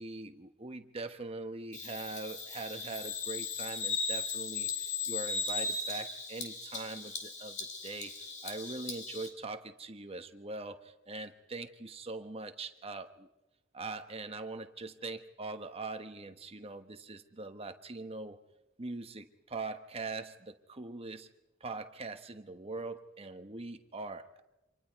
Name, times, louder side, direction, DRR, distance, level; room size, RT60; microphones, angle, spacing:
voice 1, 0.0-13.3 13.7-18.4 18.8-21.3 21.6-24.4, right 3 dB, 30° right, 7 dB, 1.2 m, -42 dB
Bird vocalization bird call bird song, 1.7-9.3, left 4 dB, 35° left, 3.3 m, -37 dB
29.5 x 26.5 x 4.7 m, 0.91 s
head